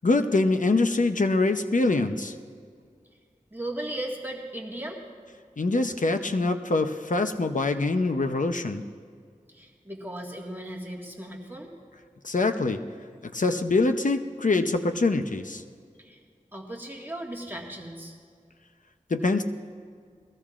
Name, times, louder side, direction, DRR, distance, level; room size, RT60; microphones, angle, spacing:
voice 1, 0.0-2.3 5.6-8.8 12.2-12.8 13.2-15.6 19.1-19.4, left 3 dB, 70° left, 6 dB, 0.7 m, -24 dB
voice 2, 3.5-5.0 9.5-11.7 16.0-16.2 16.5-18.2, right 1 dB, 15° right, -2 dB, 1.7 m, -36 dB
21.5 x 15.0 x 2.5 m, 2.1 s
wide cardioid pair, 50°, 14 cm